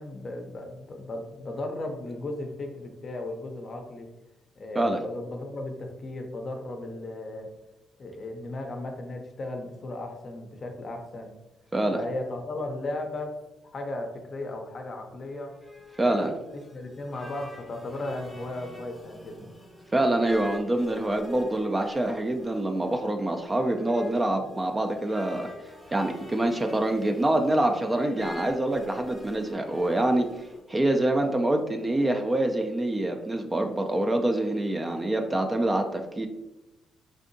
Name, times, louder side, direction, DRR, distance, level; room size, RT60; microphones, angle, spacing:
voice 1, 0.0-4.1 4.5-7.5 8.0-11.3 11.9-13.3 13.7-15.5 16.1-19.5, left 2 dB, 45° left, 3 dB, 0.5 m, -36 dB
sound 1, 15.3-30.6, left 1 dB, 5° left, 0.7 m, -45 dB
voice 2, 16.0-16.3 19.9-25.5 25.9-30.3 30.7-36.3, right 1 dB, 20° right, 4 dB, 0.3 m, -25 dB
3.3 x 2.7 x 2.6 m, 0.98 s
cardioid pair, 90°, 0 cm